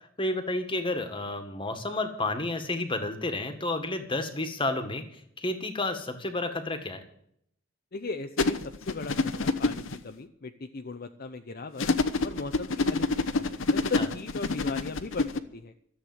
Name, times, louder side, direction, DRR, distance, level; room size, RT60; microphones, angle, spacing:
voice 1, 0.2-7.0 14.0-14.1, left 2 dB, 25° left, 7 dB, 1.8 m, -31 dB
voice 2, 7.9-11.9 12.2-15.7, left 4 dB, 50° left, 7 dB, 0.7 m, -38 dB
sound 1, 8.4-10.0 11.8-15.4, left 3 dB, 70° left, 1.0 m, -27 dB
13.5 x 8.2 x 9.6 m, 0.69 s
head